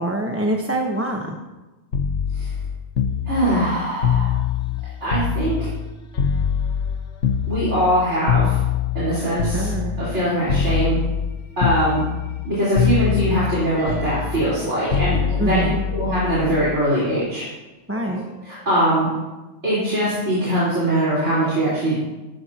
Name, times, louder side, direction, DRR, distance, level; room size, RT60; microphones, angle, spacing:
voice 1, 0.0-1.4 9.4-10.0 15.4-15.8 17.9-18.2, right 1 dB, 10° right, 0 dB, 1.1 m, -25 dB
sound 1, 1.9-5.9 6.2-10.2 10.5-11.3 11.6-12.5 12.8-16.8 18.0-18.2, left 7 dB, 80° left, 1.5 m, -23 dB
voice 2, 3.3-4.3 5.0-5.7 7.5-8.6 8.9-9.7 10.0-11.0 11.6-12.0 12.4-17.5 18.4-19.1 19.6-22.0, right 1 dB, 70° right, -10 dB, 4.8 m, -22 dB
18.5 x 13.5 x 2.9 m, 1.1 s
omnidirectional pair, 1.2 m